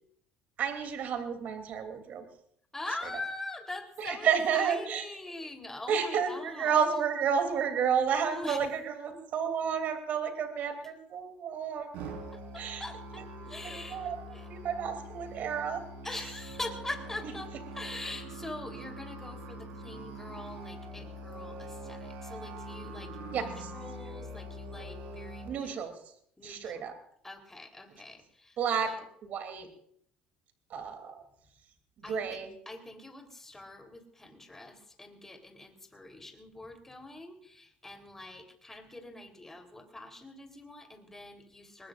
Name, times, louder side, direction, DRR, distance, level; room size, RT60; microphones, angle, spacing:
voice 1, 0.6-2.3 4.0-5.0 5.9-11.9 12.5-12.8 13.1-13.2 13.6-15.8 23.3-23.5 25.4-26.0 26.4-26.9 28.6-28.9 29.2-29.7 30.7-31.2 32.1-32.5, right 7 dB, 60° right, 6 dB, 3.0 m, -31 dB
voice 2, 2.7-6.9 8.2-8.6 12.3-14.5 16.0-25.8 26.4-26.8 27.2-28.6 28.8-29.0 32.0-32.4 32.7-41.9, left 2 dB, 10° left, 3 dB, 3.6 m, -43 dB
Musical instrument, 11.9-25.5, right 1 dB, 75° right, 4.6 m, -43 dB
22.5 x 20.0 x 2.6 m, 0.66 s
supercardioid pair, 90°, 3 cm